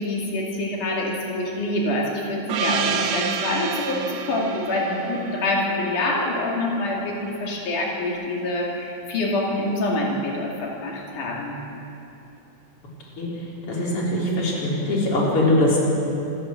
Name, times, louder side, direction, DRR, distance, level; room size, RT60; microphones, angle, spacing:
voice 1, 0.0-11.6, left 2 dB, 90° left, -2 dB, 4.0 m, -26 dB
Gong, 2.5-6.8, right 7 dB, 70° right, 2.2 m, -29 dB
voice 2, 13.7-15.8, left 1 dB, 45° left, -4 dB, 4.7 m, -21 dB
27.5 x 13.5 x 7.6 m, 2.9 s
omnidirectional pair, 3.5 m